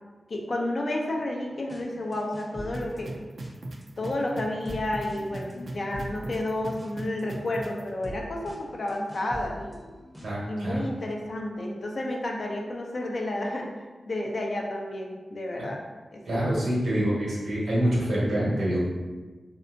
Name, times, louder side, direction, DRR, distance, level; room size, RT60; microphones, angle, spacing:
voice 1, 0.3-3.1 4.0-9.8 10.5-13.7 14.1-15.8 16.1-16.4, left 1 dB, 60° left, 0 dB, 0.6 m, -31 dB
sound 1, 1.7-1.8 2.1-3.8 4.2-10.5, equal, ahead, 0.7 m, -43 dB
sound 2, 2.7-7.8, right 2 dB, 70° right, 0.4 m, -37 dB
voice 2, 10.2-10.8 16.3-18.8, right 1 dB, 90° right, -7 dB, 1.2 m, -26 dB
3.3 x 2.7 x 2.6 m, 1.3 s
cardioid pair, 55°, 0 cm